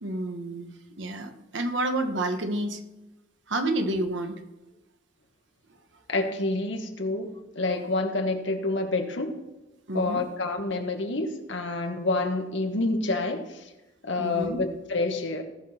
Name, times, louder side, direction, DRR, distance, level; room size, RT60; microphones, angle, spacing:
voice 1, 0.0-2.8 3.5-4.4 9.9-10.2 14.2-14.6, right 1 dB, 65° right, 6 dB, 1.3 m, -29 dB
voice 2, 6.1-9.4 9.9-13.7 14.0-15.4, left 2 dB, 65° left, 4 dB, 1.5 m, -28 dB
17.5 x 5.9 x 4.3 m, 1.1 s
head